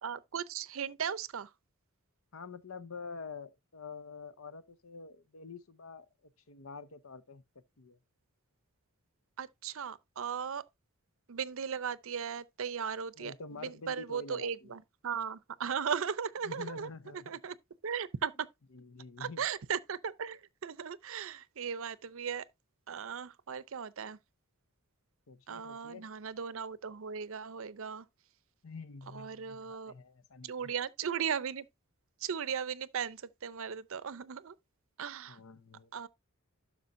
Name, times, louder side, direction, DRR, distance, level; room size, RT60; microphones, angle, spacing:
voice 1, 0.0-1.5 9.4-10.6 11.3-13.3 13.6-16.9 17.1-17.6 17.8-18.3 19.2-22.4 22.9-24.2 25.5-28.1 29.1-29.9 30.4-31.7 32.2-34.5 35.0-35.4 35.9-36.1, right 7 dB, 65° right, 0.6 m, -37 dB
voice 2, 2.3-6.1 6.5-7.4 7.8-8.0 13.2-14.7 16.4-17.4 18.7-19.5 25.3-26.1 28.6-30.7 35.3-35.9, left 4 dB, 70° left, 0.8 m, -47 dB
12.0 x 6.3 x 2.6 m
head